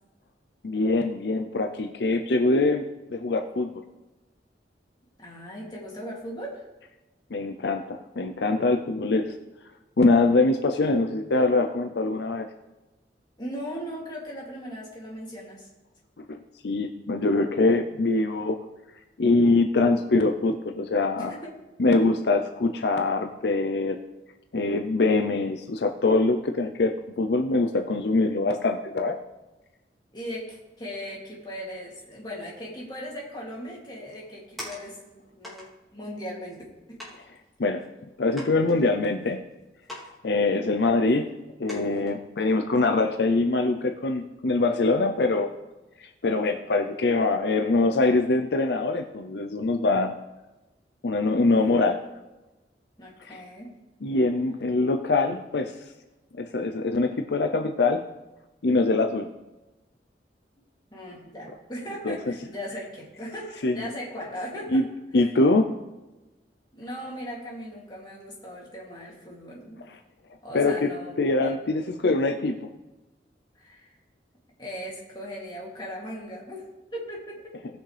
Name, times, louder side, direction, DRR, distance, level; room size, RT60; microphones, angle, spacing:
voice 1, 0.6-2.8 3.1-3.7 7.3-9.3 10.0-12.5 16.3-18.6 19.2-21.3 21.8-24.0 24.5-29.2 37.6-37.8 38.2-39.4 40.2-41.3 41.6-45.5 46.0-50.1 51.0-52.0 53.2-53.4 54.0-55.7 56.4-58.0 58.6-59.3 62.0-62.2 63.6-63.9 64.7-64.8 65.1-65.7 70.5-70.9 71.2-72.6, left 3 dB, 70° left, 6 dB, 0.6 m, -23 dB
voice 2, 5.2-6.6 13.4-15.7 21.1-21.6 30.1-35.7 35.9-36.6 36.9-37.0 53.0-53.7 60.9-64.8 65.2-65.3 66.7-69.8 70.4-71.5 73.6-74.0 74.6-77.6, equal, 25° left, -4 dB, 2.7 m, -38 dB
sound 1, 34.1-35.1 35.4-35.7 36.5-36.6 37.0-37.2 37.8-37.9 38.3-39.3 39.8-40.2 40.4-40.5 41.1-41.2 41.7-42.1 42.6-42.8, left 1 dB, ahead, 2.8 m, -42 dB
18.5 x 6.3 x 3.4 m, 1.1 s
head